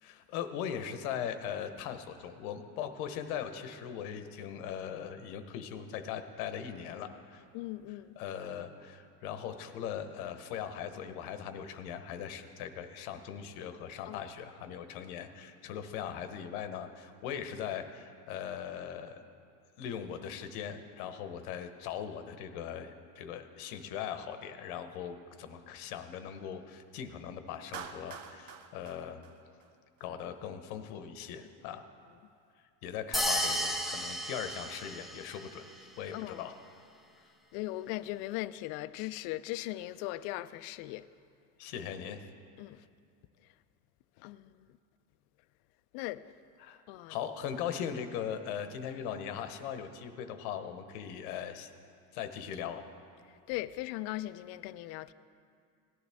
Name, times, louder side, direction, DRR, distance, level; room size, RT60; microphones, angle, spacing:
voice 1, 0.0-7.4 8.1-19.2 19.8-29.2 30.0-31.8 32.8-36.5 41.6-42.2 46.6-46.8 47.1-51.7 52.1-52.8, left 8 dB, 90° left, 1.0 m, -40 dB
voice 2, 7.5-8.2 14.1-14.2 36.1-36.4 37.5-41.1 42.6-42.8 44.2-44.5 45.9-46.2 46.9-47.2 53.5-55.1, left 16 dB, 65° left, 0.5 m, -38 dB
Clapping, 27.7-30.0, right 6 dB, 55° right, 0.8 m, -46 dB
sound 1, 33.1-35.4, equal, ahead, 0.4 m, -33 dB
18.0 x 11.0 x 3.5 m
cardioid pair, 150°, 42 cm